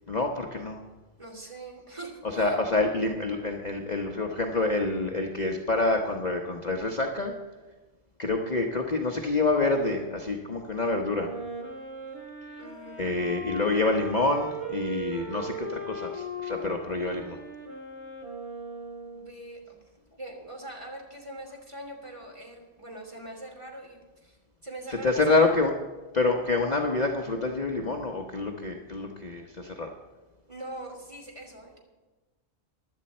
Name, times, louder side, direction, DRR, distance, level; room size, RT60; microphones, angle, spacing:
voice 1, 0.1-0.8 2.4-7.3 8.2-11.3 13.0-17.4 25.0-25.7 26.1-29.9, left 3 dB, 35° left, 1 dB, 1.0 m, -27 dB
voice 2, 1.2-2.6 12.6-13.6 19.0-19.8 20.1-24.4 24.6-25.5 30.5-31.8, right 1 dB, 25° right, 0 dB, 3.1 m, -42 dB
Wind instrument woodwind instrument, 11.1-19.4, equal, 55° right, 3.5 m, -38 dB
16.5 x 11.5 x 4.3 m, 1.2 s
omnidirectional pair, 1.4 m